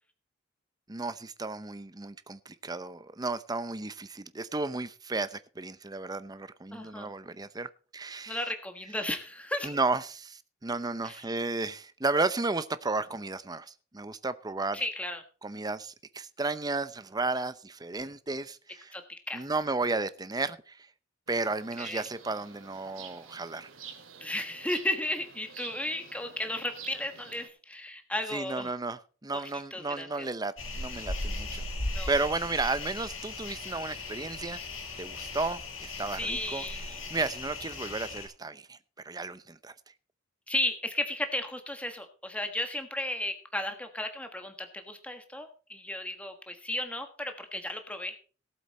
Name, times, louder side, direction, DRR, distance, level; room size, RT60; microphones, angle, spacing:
voice 1, 0.9-7.7 7.9-8.4 9.6-14.8 15.4-19.0 19.3-20.9 21.3-23.7 28.3-31.6 32.1-34.6 35.0-36.6 37.1-38.8 39.0-39.7, right 3 dB, 20° right, 0.7 m, -33 dB
voice 2, 6.7-7.1 8.3-9.8 11.0-11.2 14.7-15.2 18.9-19.0 19.3-19.4 21.8-22.0 24.2-28.7 29.3-29.4 29.7-30.3 31.9-32.1 36.2-37.0 40.5-48.2, left 1 dB, 5° left, 1.4 m, -34 dB
sound 1, 21.3-27.5, right 7 dB, 80° right, 2.3 m, -48 dB
sound 2, 30.6-38.3, left 2 dB, 85° left, 6.2 m, -37 dB
18.0 x 8.0 x 4.2 m
head